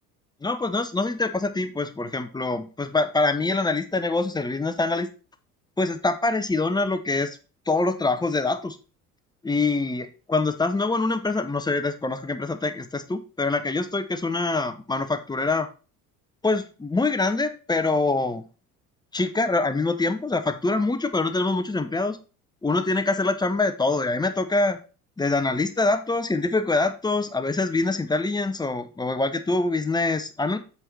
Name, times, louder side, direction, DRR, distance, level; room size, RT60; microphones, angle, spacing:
voice 1, 0.4-5.1 5.8-7.4 7.7-8.8 9.4-15.7 16.4-18.4 19.1-22.2 22.6-24.8 25.2-30.6, left 3 dB, 10° left, 9 dB, 0.8 m, -25 dB
7.8 x 4.7 x 4.2 m, 0.34 s
figure-of-eight pair, 60°, 44 cm